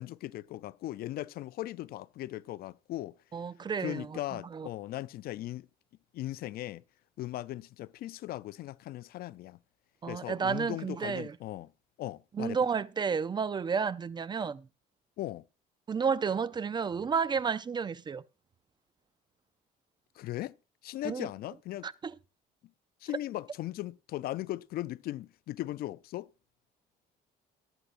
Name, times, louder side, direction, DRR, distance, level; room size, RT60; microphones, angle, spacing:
voice 1, 0.0-3.1 3.8-5.7 6.1-6.8 7.2-9.6 10.1-11.7 12.0-12.6 15.2-15.4 20.2-20.5 20.8-21.9 23.0-26.3, left 15 dB, 65° left, 0.4 m, -38 dB
voice 2, 3.3-4.7 10.0-11.4 12.3-14.7 15.9-18.2 21.0-21.3 21.8-22.1, right 6 dB, 25° right, 0.4 m, -31 dB
20.0 x 8.0 x 2.5 m
cardioid pair, 110°, 17 cm